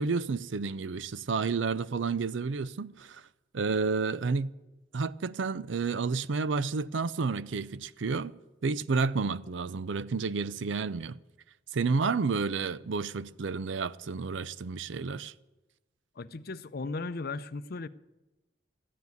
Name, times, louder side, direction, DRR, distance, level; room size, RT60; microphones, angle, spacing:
voice 1, 0.0-3.2 3.5-4.5 4.9-8.3 8.6-11.2 11.7-15.3, right 4 dB, 75° right, 0.5 m, -30 dB
voice 2, 16.2-17.9, left 3 dB, 55° left, 0.6 m, -36 dB
14.0 x 9.4 x 9.5 m
head